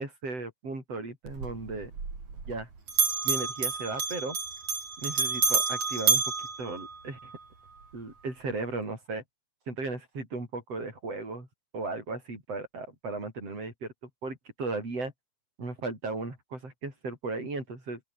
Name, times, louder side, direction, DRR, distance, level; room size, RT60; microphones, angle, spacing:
voice 1, 0.0-1.9 2.5-2.7 3.2-4.4 5.0-6.2 6.6-7.2 7.9-9.2 9.7-11.5 11.7-13.9 14.2-15.1 15.6-18.0, right 3 dB, 55° right, 8.9 m, -36 dB
Bell, 1.3-2.6 2.9-7.4, right 5 dB, 80° right, 6.8 m, -29 dB
open air
omnidirectional pair, 3.4 m